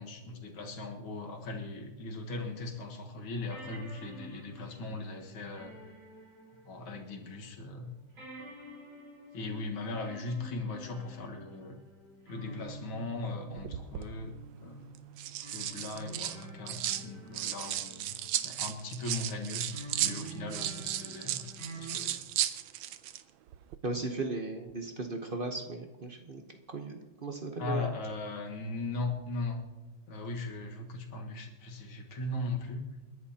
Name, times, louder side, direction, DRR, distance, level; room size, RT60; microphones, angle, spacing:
voice 1, 0.0-5.7 6.6-8.0 9.3-11.8 12.3-14.3 14.6-15.0 15.5-19.7 20.0-22.3 27.6-29.6 30.1-32.8, left 2 dB, 80° left, 2 dB, 2.4 m, -38 dB
sound 1, 2.7-2.8 3.5-7.3 7.6-7.7 8.2-18.6 19.7-21.9, right 2 dB, 70° right, 5.3 m, -48 dB
sound 2, 13.6-14.1 14.9-17.0 17.3-23.2 23.5-23.8, right 12 dB, 85° right, 1.5 m, -35 dB
voice 2, 23.8-26.4 26.7-27.9, right 3 dB, 40° right, 4 dB, 0.7 m, -36 dB
29.0 x 11.0 x 2.9 m, 1.2 s
omnidirectional pair, 2.2 m